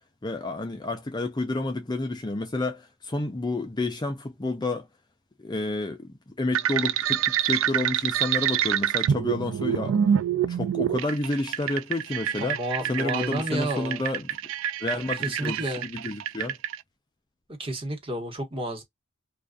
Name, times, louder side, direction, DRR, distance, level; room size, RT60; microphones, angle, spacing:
voice 1, 0.2-4.9 5.4-10.0 10.5-12.6 12.9-14.4 14.8-16.6, left 2 dB, 20° left, 0.4 m, -30 dB
sound 1, 6.5-16.7, right 9 dB, 70° right, 0.3 m, -27 dB
voice 2, 12.4-14.0 15.2-15.9 17.6-18.8, right 1 dB, 25° right, 1.2 m, -31 dB
2.4 x 2.4 x 2.3 m
head